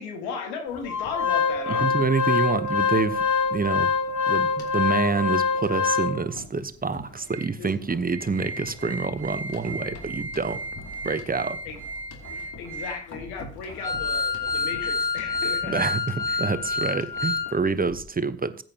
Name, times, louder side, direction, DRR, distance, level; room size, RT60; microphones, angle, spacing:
voice 1, 0.0-1.9 7.5-7.7 11.7-11.8 12.3-15.8 16.3-16.5, left 5 dB, 90° left, 1.7 m, -36 dB
Organ, 0.9-6.4 6.9-7.0 7.3-7.4 7.9-17.5 17.8-17.9, left 5 dB, 55° left, 2.7 m, -27 dB
voice 2, 1.7-3.3 3.5-3.9 4.3-10.6 11.0-11.6 15.7-18.6, right 4 dB, 25° right, 0.9 m, -27 dB
14.5 x 9.1 x 2.9 m
hypercardioid pair, 45°, 36 cm